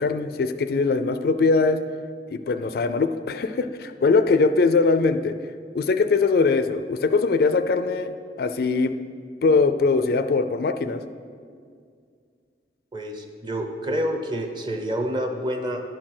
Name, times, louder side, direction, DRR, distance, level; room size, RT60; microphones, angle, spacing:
voice 1, 0.0-1.8 2.3-5.4 5.7-8.1 8.4-8.9 9.4-11.0, left 4 dB, 60° left, 10 dB, 0.4 m, -21 dB
voice 2, 12.9-15.8, equal, 25° right, 5 dB, 0.7 m, -28 dB
10.5 x 4.3 x 6.0 m, 2.1 s
head